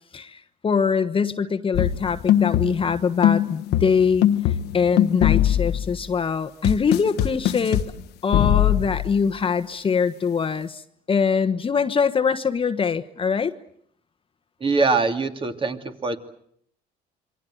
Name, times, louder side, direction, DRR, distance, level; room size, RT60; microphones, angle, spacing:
voice 1, 0.1-4.3 4.7-7.8 8.2-10.8 11.1-13.5, left 6 dB, 30° left, 10 dB, 1.3 m, -23 dB
sound 1, 1.7-3.0 3.2-6.1 6.6-7.9 8.3-9.1, left 11 dB, 80° left, 1.3 m, -21 dB
voice 2, 14.6-16.2, right 3 dB, 30° right, 6 dB, 2.8 m, -23 dB
27.5 x 24.0 x 7.9 m, 0.67 s
cardioid pair, 110°, 17 cm